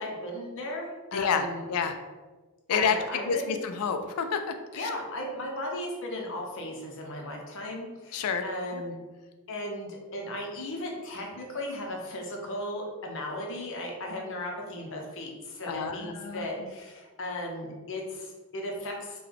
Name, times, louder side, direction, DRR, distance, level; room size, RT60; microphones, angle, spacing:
voice 1, 0.0-1.7 2.7-3.6 4.8-9.0 9.5-19.2, left 1 dB, 60° left, 0 dB, 0.7 m, -36 dB
voice 2, 1.1-1.9 2.7-4.9 8.1-8.4 8.7-8.8 15.7-16.7, left 6 dB, 80° left, 7 dB, 0.4 m, -29 dB
3.7 x 2.2 x 3.4 m, 1.3 s
head